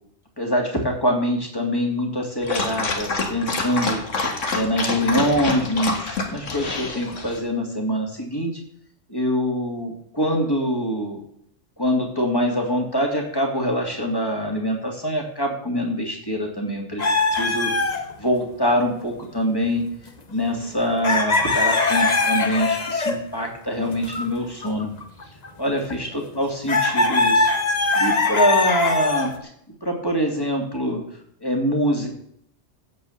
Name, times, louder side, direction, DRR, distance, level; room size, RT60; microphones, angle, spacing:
voice 1, 0.4-4.0 4.5-8.5 9.1-11.2 11.8-19.8 20.3-24.9 25.6-29.3 29.8-31.0 31.4-32.1, equal, 20° left, 1 dB, 2.9 m, -24 dB
Dog, 2.4-7.4, left 3 dB, 75° left, 2.1 m, -27 dB
sound 1, 17.0-18.3 19.6-19.8 20.1-20.2 20.8-23.2 23.9-24.2 24.6-25.9 26.7-29.4, left 3 dB, 35° left, 1.2 m, -21 dB
15.5 x 5.3 x 8.1 m, 0.69 s
omnidirectional pair, 1.3 m